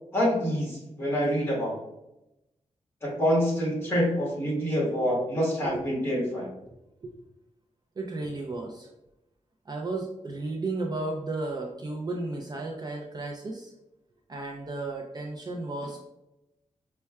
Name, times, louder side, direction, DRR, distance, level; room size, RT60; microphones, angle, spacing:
voice 1, 0.1-1.7 3.0-6.5, equal, 20° left, -5 dB, 1.5 m, -26 dB
voice 2, 8.0-8.9 9.7-13.7 14.3-16.1, right 2 dB, 35° right, 0 dB, 0.4 m, -34 dB
5.3 x 2.2 x 2.3 m, 0.91 s
wide cardioid pair, 120°, 12 cm